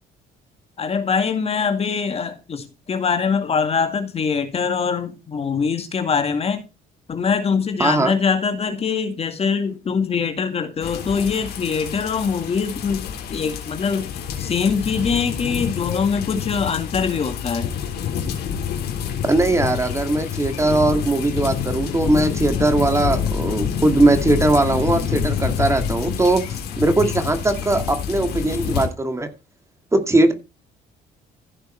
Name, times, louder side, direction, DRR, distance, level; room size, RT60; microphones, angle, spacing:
voice 1, 0.8-6.6 7.1-17.7, left 6 dB, 35° left, 2.1 m, -23 dB
voice 2, 7.8-8.2 19.3-29.3 29.9-30.3, right 2 dB, 15° right, 2.2 m, -19 dB
sound 1, 10.8-28.9, left 8 dB, 70° left, 3.4 m, -27 dB
15.5 x 6.8 x 4.4 m
cardioid pair, 110°, 17 cm